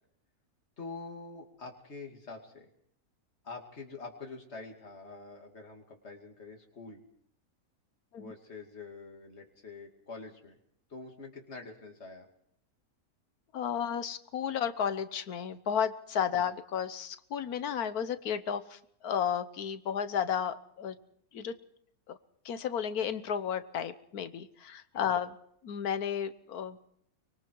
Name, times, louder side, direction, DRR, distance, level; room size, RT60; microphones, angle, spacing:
voice 1, 0.8-2.7 3.4-7.0 8.2-10.6 10.9-12.3 16.3-16.5 24.9-25.0, left 3 dB, 45° left, 1 dB, 2.8 m, -46 dB
voice 2, 13.5-21.0 21.3-21.5 22.1-22.2 22.4-25.4 25.6-26.8, left 8 dB, 85° left, 11 dB, 1.5 m, -33 dB
24.5 x 23.5 x 4.7 m, 0.70 s
omnidirectional pair, 1.5 m